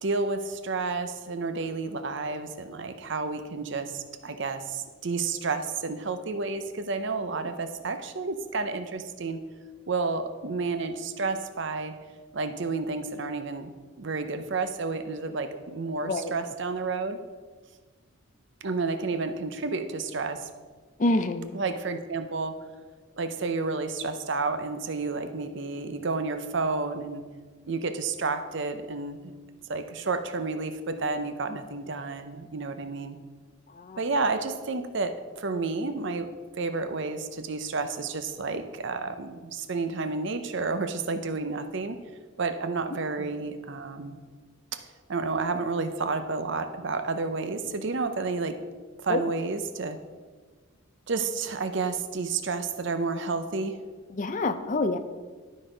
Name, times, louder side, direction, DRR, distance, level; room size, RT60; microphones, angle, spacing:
voice 1, 0.0-9.4 9.9-11.9 12.3-13.7 14.0-17.2 18.6-20.5 21.5-22.6 23.2-27.2 27.7-29.3 29.7-33.2 34.0-36.3 36.6-42.0 42.4-44.2 44.7-44.8 45.1-48.6 49.0-50.0 51.1-53.8, right 4 dB, 60° right, 9 dB, 0.6 m, -30 dB
voice 2, 21.0-21.5 33.8-34.0 49.1-49.2 54.1-55.0, left 2 dB, 40° left, 10 dB, 0.5 m, -26 dB
12.0 x 4.1 x 5.0 m, 1.4 s
head